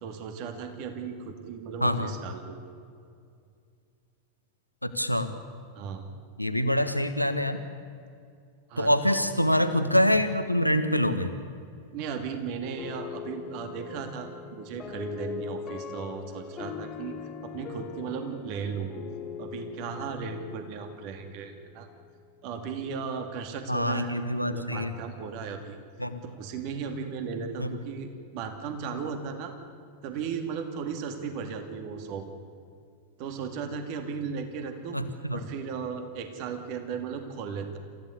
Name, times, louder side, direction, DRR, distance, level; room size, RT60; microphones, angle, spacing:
voice 1, 0.0-2.6 5.7-6.0 8.7-9.6 10.1-10.2 11.9-17.2 17.4-18.9 19.4-21.9 22.4-24.1 24.5-25.8 26.2-29.5 30.0-32.3 33.2-35.0 35.3-37.8, right 6 dB, 45° right, 6 dB, 2.5 m, -36 dB
voice 2, 4.8-5.3 6.4-7.6 8.8-11.3 23.7-24.9 26.0-26.2 27.6-27.7 34.9-35.0 35.3-35.4, equal, 90° left, 9 dB, 1.5 m, -25 dB
sound 1, 12.8-21.9, left 6 dB, 25° left, 2.4 m, -41 dB
28.5 x 15.0 x 8.2 m, 2.3 s
figure-of-eight pair, 90°, 0 cm